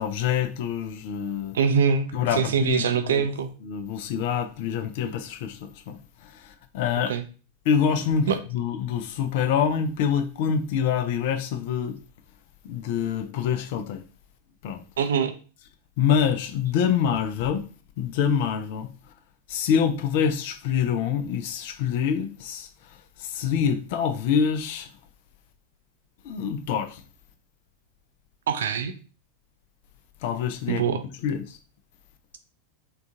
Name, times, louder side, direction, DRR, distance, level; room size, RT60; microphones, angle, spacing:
voice 1, 0.0-1.6 2.1-3.3 3.6-7.1 7.7-12.0 12.6-14.0 14.6-14.8 16.0-17.7 18.0-18.9 19.5-22.7 23.2-24.9 26.2-27.0 30.2-31.6, left 7 dB, 50° left, 0.5 m, -26 dB
voice 2, 1.5-3.5 7.1-7.2 8.3-8.4 15.0-15.3 28.5-28.9 30.7-31.0, right 6 dB, 60° right, 0.4 m, -24 dB
3.7 x 2.4 x 3.5 m
figure-of-eight pair, 90°, 0 cm